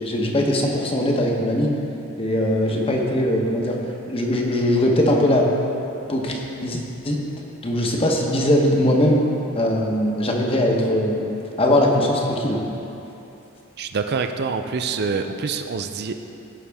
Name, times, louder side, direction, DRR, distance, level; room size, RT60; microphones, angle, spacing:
voice 1, 0.0-1.7 2.2-3.8 4.1-5.4 6.1-6.8 7.0-7.2 7.6-9.2 9.5-11.3 11.6-12.6, left 1 dB, 25° left, 0 dB, 1.0 m, -20 dB
voice 2, 13.8-16.2, right 5 dB, 50° right, 7 dB, 0.4 m, -26 dB
16.0 x 5.6 x 3.5 m, 2.9 s
head